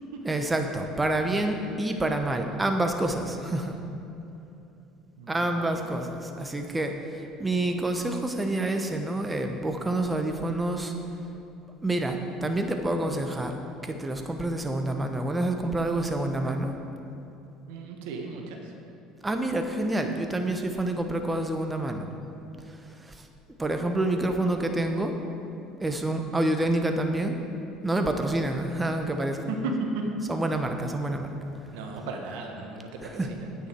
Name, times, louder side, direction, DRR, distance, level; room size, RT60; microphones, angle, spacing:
voice 1, 0.2-3.8 5.3-10.9 11.8-13.5 13.8-16.7 19.2-22.1 22.7-23.3 23.6-25.1 25.8-27.4 27.8-29.4 30.3-31.3 33.0-33.3, right 1 dB, 15° right, 5 dB, 1.1 m, -28 dB
voice 2, 5.2-5.8 17.7-18.7 29.5-30.0 31.7-33.0 33.3-33.5, right 3 dB, 70° right, 2 dB, 1.2 m, -35 dB
9.6 x 9.2 x 4.6 m, 2.8 s
hypercardioid pair, 65°, 0 cm